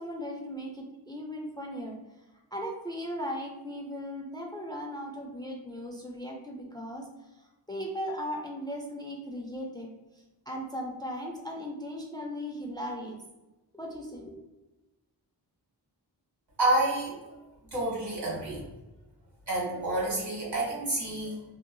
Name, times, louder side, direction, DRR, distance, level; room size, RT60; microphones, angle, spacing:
voice 1, 0.0-2.0 2.5-7.0 7.7-9.9 10.5-13.2 13.7-14.3, equal, 10° left, 1 dB, 0.4 m, -37 dB
voice 2, 16.6-17.4 17.7-18.7 19.5-21.4, right 2 dB, 65° right, -5 dB, 1.5 m, -29 dB
2.7 x 2.3 x 2.5 m, 1.1 s
wide cardioid pair, 55°, 42 cm